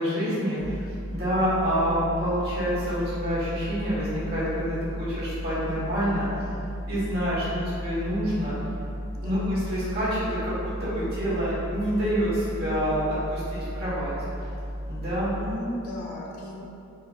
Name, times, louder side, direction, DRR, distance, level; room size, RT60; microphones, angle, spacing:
voice 1, 0.0-6.3 6.9-8.5 9.2-14.1 14.9-15.3, equal, 50° right, -11 dB, 1.3 m, -27 dB
sound 1, 0.6-15.5, equal, 5° left, 0.9 m, -35 dB
voice 2, 9.1-9.6 15.4-16.6, left 1 dB, 90° left, -4 dB, 0.6 m, -36 dB
4.3 x 2.4 x 2.4 m, 2.6 s
head